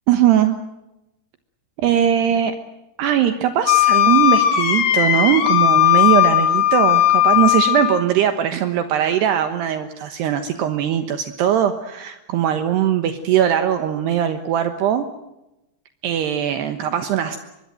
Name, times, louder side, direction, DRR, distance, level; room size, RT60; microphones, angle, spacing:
voice 1, 0.1-0.6 1.8-2.6 3.0-15.1 16.0-17.4, right 10 dB, 70° right, 8 dB, 3.1 m, -20 dB
Wind instrument woodwind instrument, 3.7-8.0, left 13 dB, 65° left, 3.8 m, -16 dB
24.5 x 22.0 x 7.8 m, 0.92 s
omnidirectional pair, 5.4 m